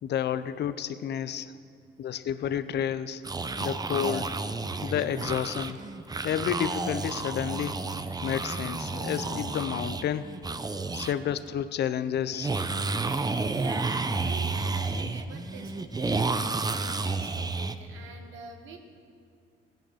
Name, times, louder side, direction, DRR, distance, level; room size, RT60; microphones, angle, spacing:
voice 1, 0.0-1.5 2.0-3.2 3.6-4.3 4.8-5.8 6.2-7.8 8.2-10.4 10.9-12.5, left 9 dB, 60° left, 13 dB, 0.6 m, -30 dB
sound 1, 3.2-11.1 11.4-11.5 12.3-17.8, right 3 dB, 20° right, 0.6 m, -31 dB
voice 2, 13.5-18.8, right 4 dB, 90° right, 4 dB, 1.5 m, -47 dB
16.0 x 9.1 x 6.4 m, 2.4 s
cardioid pair, 90°, 20 cm